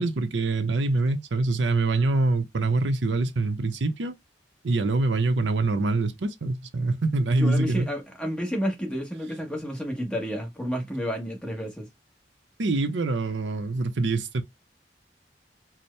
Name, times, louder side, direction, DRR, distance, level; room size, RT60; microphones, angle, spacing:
voice 1, 0.0-4.2 4.6-7.9 12.6-14.4, right 3 dB, 80° right, 0.7 m, -25 dB
voice 2, 7.4-11.9, equal, 5° left, 1.0 m, -30 dB
4.3 x 2.1 x 3.2 m
head